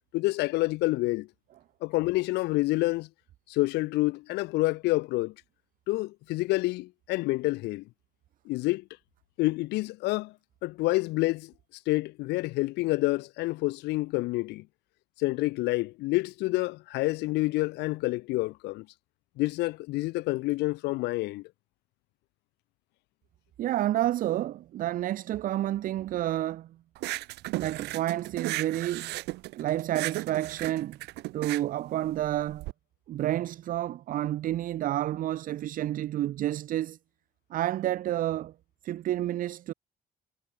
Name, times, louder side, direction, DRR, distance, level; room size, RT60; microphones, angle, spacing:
voice 1, 0.1-1.3 1.8-3.1 3.5-5.3 5.9-7.8 8.5-8.8 9.4-10.3 10.6-11.5 11.9-14.6 15.2-18.9 19.4-21.4, left 20 dB, 85° left, 0.7 m, -28 dB
voice 2, 23.6-26.8 27.6-29.2 29.5-31.0 31.3-32.7 33.1-37.0 37.5-38.5 38.8-39.7, right 13 dB, 55° right, 0.5 m, -30 dB
sound 1, 27.0-32.7, right 20 dB, 90° right, 2.3 m, -35 dB
cardioid pair, 110°, 17 cm